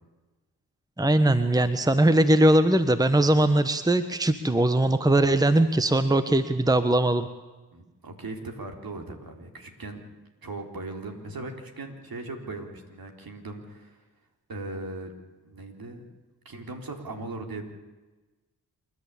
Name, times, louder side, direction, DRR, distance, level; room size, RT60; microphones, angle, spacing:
voice 1, 1.0-7.3, right 1 dB, 10° right, 11 dB, 1.3 m, -21 dB
voice 2, 7.7-10.0 10.4-14.0 14.5-15.1 15.4-16.0 16.5-17.6, right 2 dB, 55° right, 3 dB, 4.0 m, -38 dB
27.5 x 11.5 x 8.6 m, 1.2 s
supercardioid pair, 40°, 41 cm